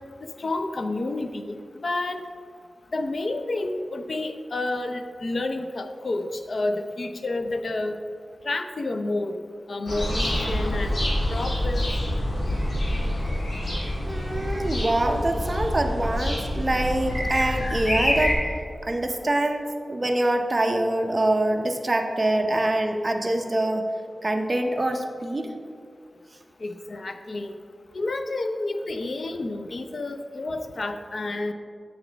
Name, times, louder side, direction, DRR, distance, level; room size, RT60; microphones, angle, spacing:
voice 1, 0.4-2.2 2.9-8.0 8.4-9.4 9.7-11.9 26.6-27.5 27.9-31.5, left 2 dB, 60° left, 7 dB, 0.5 m, -30 dB
sound 1, 9.9-18.3, left 1 dB, 75° left, 1.7 m, -26 dB
voice 2, 14.1-18.4 18.8-23.8 24.2-25.5, right 1 dB, 30° right, 3 dB, 0.7 m, -25 dB
8.0 x 6.3 x 3.4 m, 2.2 s
wide cardioid pair, 90°, 0 cm